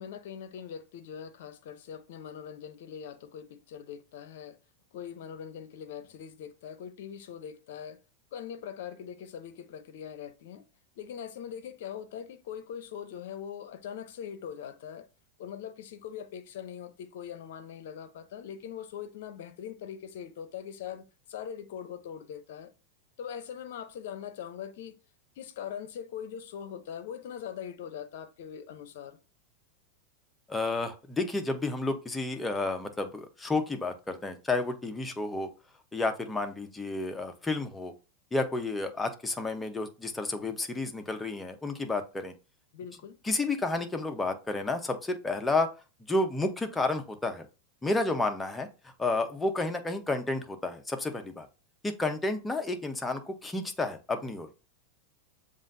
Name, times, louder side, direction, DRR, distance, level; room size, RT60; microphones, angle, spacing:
voice 1, 0.0-4.6 4.9-8.0 8.3-10.6 11.0-15.1 15.4-22.7 23.2-25.0 25.4-29.2 42.7-43.2, left 8 dB, 65° left, 0.7 m, -42 dB
voice 2, 30.5-35.5 35.9-37.9 38.3-42.3 43.2-45.7 46.1-47.5 47.8-51.5 51.8-54.5, left 2 dB, 10° left, 0.9 m, -31 dB
7.2 x 2.6 x 2.7 m
hypercardioid pair, 100°, 0 cm